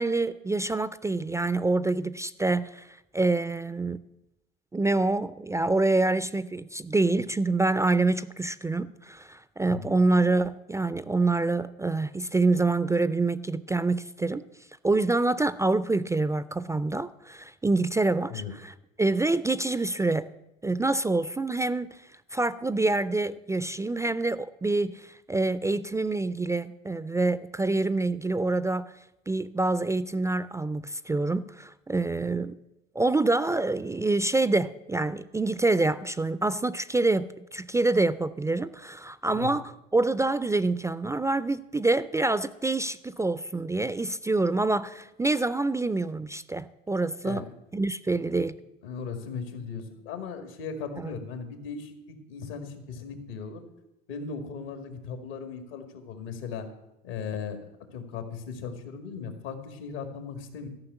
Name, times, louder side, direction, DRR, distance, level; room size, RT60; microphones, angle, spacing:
voice 1, 0.0-2.9 3.1-4.0 4.7-14.4 14.8-20.3 20.6-22.0 22.3-28.9 29.3-32.6 33.0-37.2 37.5-47.4 47.7-48.6 51.0-51.1, right 2 dB, 10° right, 15 dB, 0.3 m, -26 dB
voice 2, 48.8-53.6 54.1-56.7 57.0-57.6 57.9-60.7, left 6 dB, 85° left, 7 dB, 2.0 m, -37 dB
13.5 x 5.7 x 7.9 m, 0.93 s
supercardioid pair, 90°, 30 cm